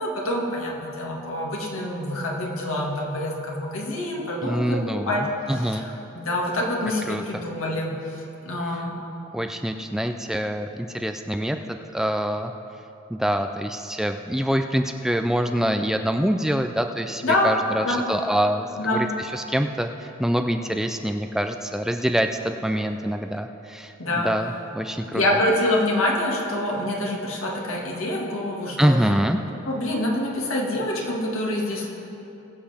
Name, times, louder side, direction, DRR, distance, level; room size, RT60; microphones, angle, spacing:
voice 1, 0.0-5.2 5.5-8.9 17.2-17.6 17.8-18.1 18.8-19.1 24.0-24.3 25.1-29.1 29.7-31.9, left 1 dB, 90° left, -2 dB, 2.0 m, -26 dB
voice 2, 4.4-5.8 7.1-7.4 9.3-12.5 13.1-25.2 28.8-29.4, equal, ahead, 6 dB, 0.3 m, -25 dB
20.5 x 7.6 x 3.5 m, 3.0 s
head